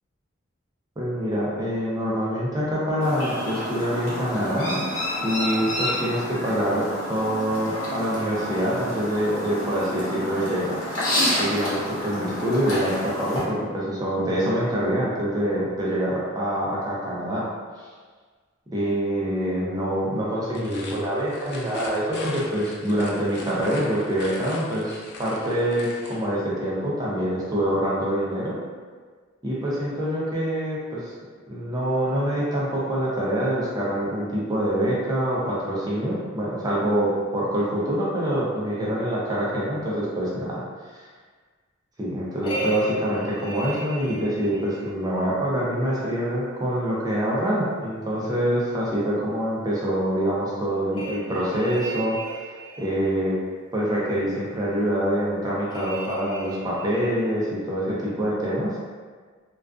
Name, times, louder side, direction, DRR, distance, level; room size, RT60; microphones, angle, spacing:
voice 1, 1.0-4.8 5.2-10.7 11.4-17.4 18.7-28.6 29.4-31.1 31.5-40.6 40.9-41.0 42.0-52.3 52.8-53.4 53.7-58.7, equal, 20° right, -7 dB, 0.5 m, -25 dB
Chirp tweet, 3.0-13.4, left 1 dB, 75° left, 0.9 m, -29 dB
sound 1, 20.5-26.3, left 2 dB, 55° left, 0.4 m, -41 dB
sound 2, 42.4-44.9 50.9-53.1 55.7-57.2, right 2 dB, 25° left, 0.7 m, -33 dB
2.4 x 2.3 x 2.3 m, 1.5 s
head